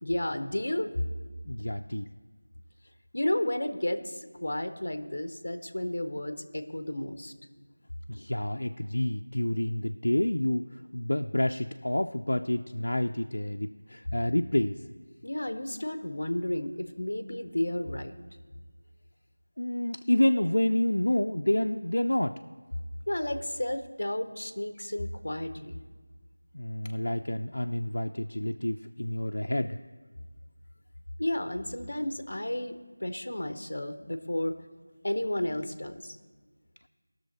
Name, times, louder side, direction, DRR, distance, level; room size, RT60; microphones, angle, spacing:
voice 1, 0.0-0.9 3.1-7.3 14.1-14.2 15.2-18.1 23.1-25.8 31.2-34.6 35.0-36.2, left 1 dB, 55° left, 9 dB, 0.8 m, -32 dB
voice 2, 1.5-2.1 8.1-14.8 19.6-22.4 26.5-29.8, left 1 dB, 90° left, 5 dB, 0.4 m, -28 dB
19.0 x 6.4 x 4.1 m, 1.4 s
figure-of-eight pair, 180°, 0 cm